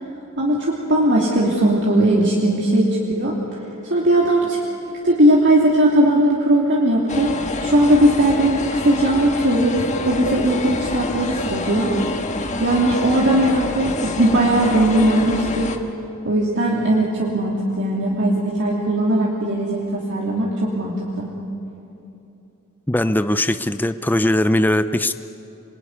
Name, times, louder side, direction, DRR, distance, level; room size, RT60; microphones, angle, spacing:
voice 1, 0.4-3.4 3.8-7.3 7.6-11.9 12.6-15.7 16.2-21.3, right 1 dB, 55° right, -4 dB, 2.9 m, -18 dB
sound 1, 7.1-15.8, left 2 dB, 35° left, 1.6 m, -27 dB
voice 2, 22.9-25.1, left 1 dB, 10° left, 11 dB, 0.5 m, -19 dB
27.0 x 22.0 x 9.6 m, 2.8 s
head